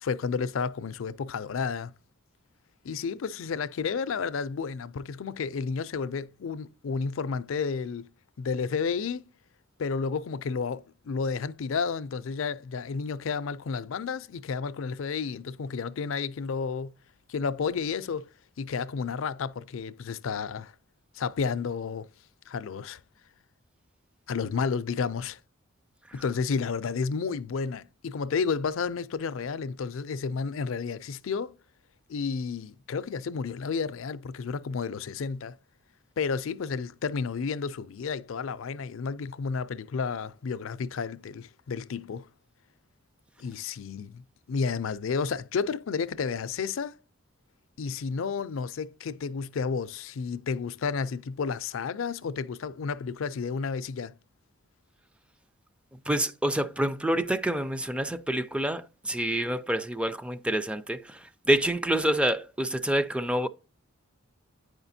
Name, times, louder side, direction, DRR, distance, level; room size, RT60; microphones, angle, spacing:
voice 1, 0.0-1.9 2.8-8.1 8.4-9.2 9.8-16.9 17.3-18.3 18.6-20.7 21.2-22.1 22.5-23.0 24.3-25.4 26.1-31.5 32.1-35.6 36.2-42.3 43.4-44.2 44.5-47.0 47.8-54.1, left 5 dB, 70° left, 0.4 m, -31 dB
voice 2, 56.1-63.5, right 1 dB, 5° right, 0.3 m, -27 dB
9.3 x 4.9 x 2.7 m
head